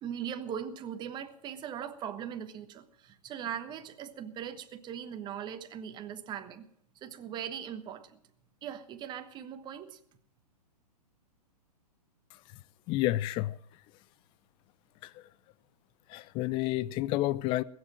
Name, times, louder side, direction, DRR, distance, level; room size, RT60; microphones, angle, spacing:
voice 1, 0.0-6.7 7.0-8.2 8.6-10.0, right 9 dB, 20° right, 1.2 m, -40 dB
voice 2, 12.9-13.5 16.1-17.6, left 16 dB, 25° left, 0.5 m, -29 dB
20.5 x 7.8 x 7.4 m
figure-of-eight pair, 115°, 21 cm